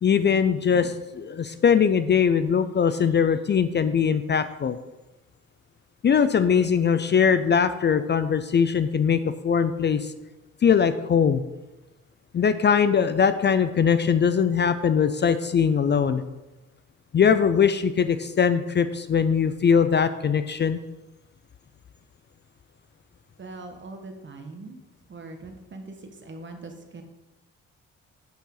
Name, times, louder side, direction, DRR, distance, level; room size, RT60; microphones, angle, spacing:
voice 1, 0.0-4.8 6.0-10.1 10.6-11.4 12.3-16.2 17.1-20.8, left 7 dB, 35° left, 12 dB, 0.5 m, -21 dB
voice 2, 23.4-24.8 25.1-27.0, right 2 dB, 40° right, 5 dB, 1.5 m, -41 dB
9.0 x 8.3 x 3.9 m, 1.0 s
cardioid pair, 90°, 30 cm